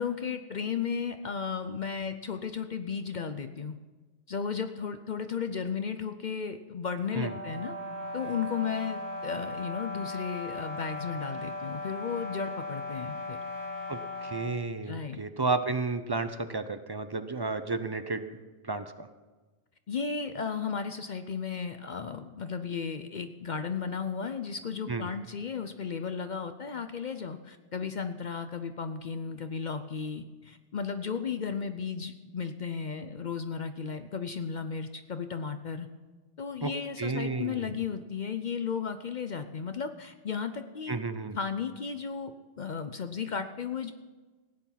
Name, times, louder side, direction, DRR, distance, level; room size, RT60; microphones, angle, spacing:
voice 1, 0.0-3.8 4.3-7.8 8.1-13.4 14.9-15.2 19.9-35.9 36.4-41.0 41.4-43.9, left 6 dB, 50° left, 9 dB, 0.7 m, -34 dB
sound 1, 7.1-14.6, left 2 dB, 70° left, 2.7 m, -38 dB
voice 2, 13.9-18.4 18.6-19.1 24.9-25.1 36.6-36.7 37.0-37.7 40.9-41.4, right 3 dB, 30° right, 9 dB, 0.5 m, -32 dB
16.0 x 9.4 x 5.8 m, 1.3 s
omnidirectional pair, 1.1 m